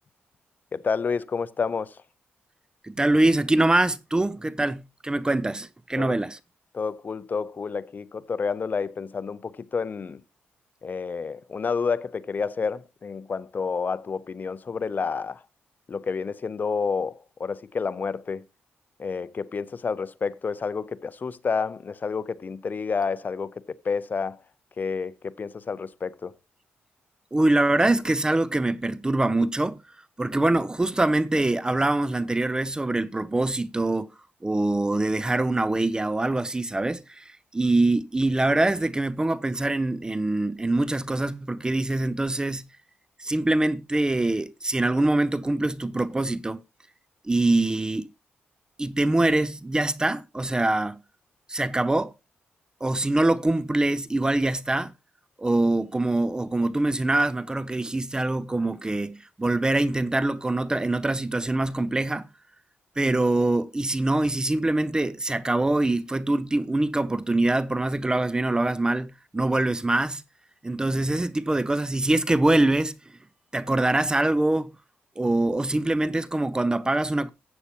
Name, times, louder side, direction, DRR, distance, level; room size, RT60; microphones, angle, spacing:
voice 1, 0.7-1.9 6.0-6.1 6.7-10.2 10.8-15.4 15.9-18.5 19.0-23.5 23.8-24.4 24.8-26.3, left 5 dB, 40° left, 0.7 m, -29 dB
voice 2, 2.8-6.4 27.3-29.8 30.2-34.1 34.4-42.7 43.2-46.6 47.2-48.1 48.8-51.0 51.5-52.1 52.8-54.9 55.4-62.3 63.0-70.2 70.6-72.9 73.5-74.7 75.2-77.3, right 2 dB, 15° right, 0.5 m, -24 dB
14.0 x 8.3 x 2.9 m
cardioid pair, 75°, 4 cm